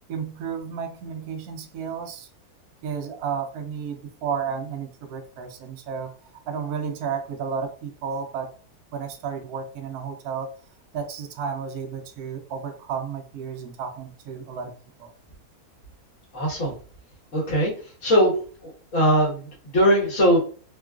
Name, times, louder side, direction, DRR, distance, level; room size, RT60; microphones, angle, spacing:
voice 1, 0.1-2.3 2.8-6.1 6.5-8.5 8.9-10.5 10.9-14.7 15.0-15.1, right 6 dB, 75° right, 1.1 m, -32 dB
voice 2, 16.3-16.7 17.3-17.7 18.0-18.3 18.9-19.5 19.7-20.4, equal, 55° left, 1.8 m, -19 dB
3.7 x 2.3 x 2.4 m
omnidirectional pair, 1.6 m